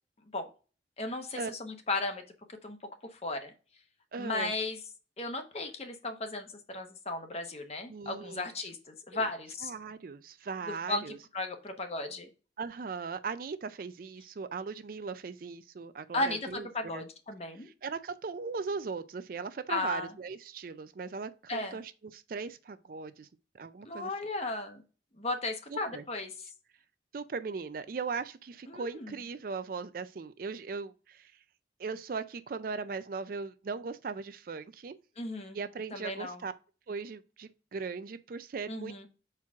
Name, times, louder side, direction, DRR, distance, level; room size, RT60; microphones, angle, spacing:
voice 1, 1.0-2.2 2.5-2.8 3.1-3.5 4.2-4.8 5.2-9.7 10.6-12.3 16.1-17.7 19.7-20.1 21.5-21.8 23.8-24.8 25.2-26.3 28.7-29.2 35.2-35.6 35.9-36.4 38.7-39.1, left 2 dB, 35° left, 0.9 m, -35 dB
voice 2, 4.1-4.5 7.9-8.5 9.1-9.3 9.6-11.2 12.6-17.0 17.6-23.3 23.5-24.1 25.7-26.0 27.1-31.3 31.8-35.0 35.5-36.5 36.9-39.1, right 5 dB, 50° right, 0.4 m, -38 dB
5.9 x 4.5 x 3.5 m
head